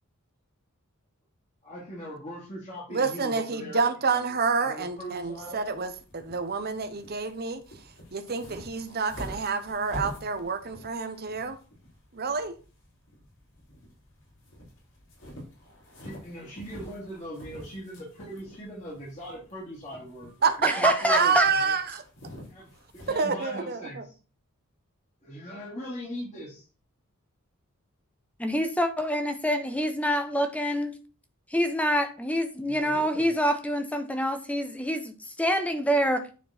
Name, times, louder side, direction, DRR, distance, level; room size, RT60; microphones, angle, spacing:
voice 1, 1.6-5.6 16.0-21.7 22.5-22.7 23.0-24.2 25.2-26.7 32.6-33.3, equal, 35° left, 2.8 m, -40 dB
voice 2, 2.9-7.6 8.1-11.6 12.1-12.5 20.4-22.0 23.2-24.0, right 5 dB, 45° right, 1.0 m, -28 dB
sound 1, 4.8-23.3, left 1 dB, 65° left, 3.5 m, -47 dB
voice 3, 20.6-21.5 28.4-31.0 31.5-36.2, equal, 5° left, 0.8 m, -26 dB
9.3 x 4.4 x 4.3 m
head